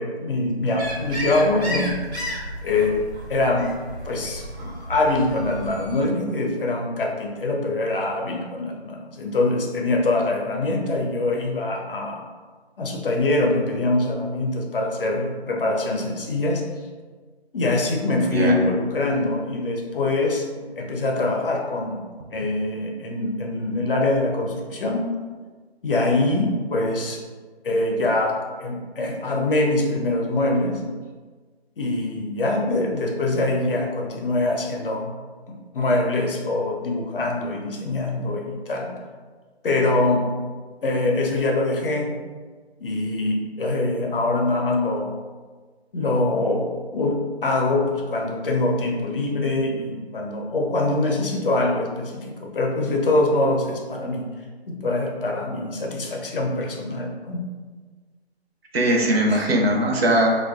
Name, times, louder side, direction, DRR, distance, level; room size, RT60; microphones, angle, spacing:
voice 1, 0.0-2.0 2.6-3.0 3.3-3.7 4.0-12.2 12.8-16.6 17.5-20.4 20.8-22.0 22.3-25.0 25.8-27.2 27.6-30.8 31.8-35.2 35.5-38.9 39.6-40.2 40.8-42.2 42.8-45.2 45.9-46.7 46.9-54.3 54.7-57.4 59.0-59.4, left 2 dB, 55° left, 0 dB, 0.5 m, -24 dB
sound 1, 0.8-6.0, equal, 85° right, 1.1 m, -33 dB
voice 2, 58.7-60.4, right 1 dB, 65° right, 0 dB, 0.6 m, -20 dB
2.6 x 2.3 x 2.3 m, 1.4 s
hypercardioid pair, 165°, 32 cm